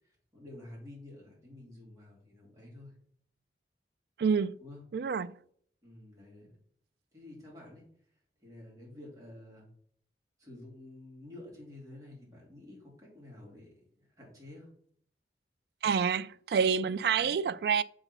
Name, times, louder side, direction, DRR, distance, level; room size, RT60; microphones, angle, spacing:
voice 1, 0.3-2.9 4.6-4.8 5.8-6.5 7.1-7.8 8.4-9.7 10.4-14.7, left 1 dB, 20° right, 3.0 m, -50 dB
voice 2, 4.2-4.5 4.9-5.3 15.8-17.8, right 6 dB, 60° right, 0.3 m, -28 dB
7.0 x 3.9 x 5.5 m
head